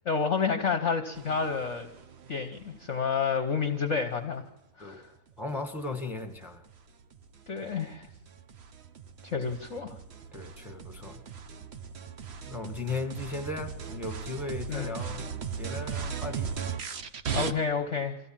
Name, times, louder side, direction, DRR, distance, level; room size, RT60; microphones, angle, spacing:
voice 1, 0.0-1.9 2.3-4.4 4.8-5.0 7.5-8.1 9.2-9.9 14.7-15.0 17.3-18.2, left 5 dB, 45° left, 6 dB, 1.1 m, -29 dB
sound 1, 1.1-2.9 5.8-17.5, right 6 dB, 50° right, 0.7 m, -38 dB
voice 2, 5.4-6.6 10.3-11.2 12.5-15.3 15.6-16.5, left 3 dB, ahead, 4 dB, 1.6 m, -37 dB
24.0 x 15.5 x 7.4 m, 0.95 s
omnidirectional pair, 2.1 m